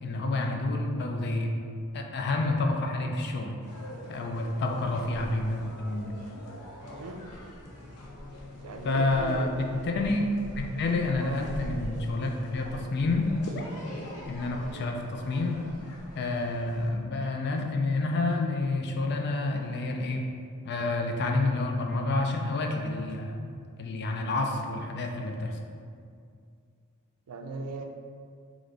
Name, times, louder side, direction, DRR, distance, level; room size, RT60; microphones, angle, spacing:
voice 1, 0.0-1.6 1.9-3.5 4.1-6.1 8.8-9.6 10.0-10.2 10.6-13.3 13.5-13.7 14.3-15.6 16.1-20.2 20.6-23.4 23.8-25.6, left 2 dB, 50° left, 3 dB, 0.4 m, -29 dB
sound 1, 3.6-16.9, equal, 85° left, 0.7 m, -44 dB
sound 2, 6.8-15.6, left 3 dB, 5° right, 0.6 m, -49 dB
voice 2, 8.6-9.8 10.6-10.7 11.2-11.4 14.7-14.9 27.3-27.8, right 3 dB, 90° right, 4 dB, 0.4 m, -39 dB
3.3 x 2.5 x 3.8 m, 2.3 s
head